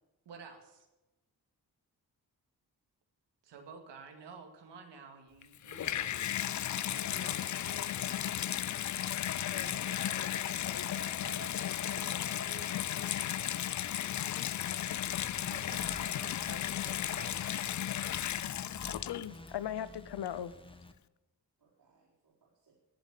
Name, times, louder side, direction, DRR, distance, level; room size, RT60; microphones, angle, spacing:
voice 1, 0.3-0.9 3.4-6.2 6.9-7.6 15.5-17.6, right 5 dB, 85° right, 2.2 m, -51 dB
Water tap faucet / Bathtub (filling or washing), 5.4-19.5 20.2-20.3, left 11 dB, 45° left, 0.4 m, -35 dB
sound 1, 5.7-13.9, right 2 dB, 40° right, 1.6 m, -53 dB
voice 2, 8.0-8.7 9.5-9.7 10.1-10.8 11.5-12.3 14.3-14.8 16.9-17.0 18.9-20.6, left 10 dB, 75° left, 0.8 m, -42 dB
voice 3, 9.5-10.3 11.4-12.3 21.6-22.7, right 4 dB, 60° right, 5.1 m, -57 dB
sound 2, 14.8-20.9, left 2 dB, 10° left, 1.4 m, -51 dB
15.0 x 7.4 x 8.4 m
supercardioid pair, 50°, 41 cm